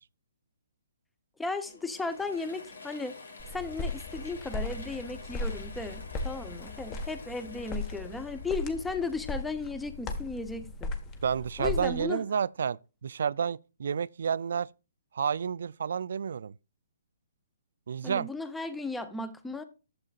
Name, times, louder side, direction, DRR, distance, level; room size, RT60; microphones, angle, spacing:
voice 1, 1.4-3.2 3.5-10.9 11.6-12.2 18.0-19.6, left 3 dB, 5° left, 0.9 m, -35 dB
Mechanisms / Drill, 1.6-10.3, left 4 dB, 80° left, 3.2 m, -49 dB
sound 1, 3.4-12.0, left 2 dB, 20° left, 1.4 m, -37 dB
voice 2, 11.2-14.7 15.1-16.5 17.9-18.3, right 7 dB, 65° right, 0.3 m, -30 dB
11.0 x 7.7 x 2.5 m
hypercardioid pair, 145°, 0 cm